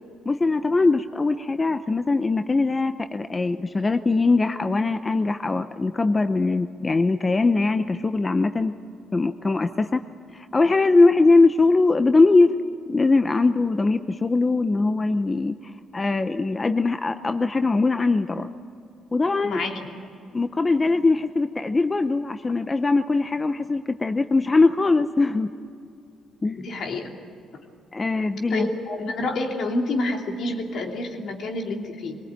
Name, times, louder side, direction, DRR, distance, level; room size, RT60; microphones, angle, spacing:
voice 1, 0.3-8.7 9.1-10.0 10.3-12.5 12.9-18.5 19.1-19.6 20.3-25.5 26.4-26.7 27.9-28.7, left 3 dB, 25° left, 9 dB, 0.7 m, -21 dB
voice 2, 19.4-19.9 26.6-27.1 28.5-32.2, left 2 dB, 65° left, 2 dB, 2.9 m, -28 dB
23.0 x 19.0 x 8.9 m, 2.6 s
cardioid pair, 90°, 0 cm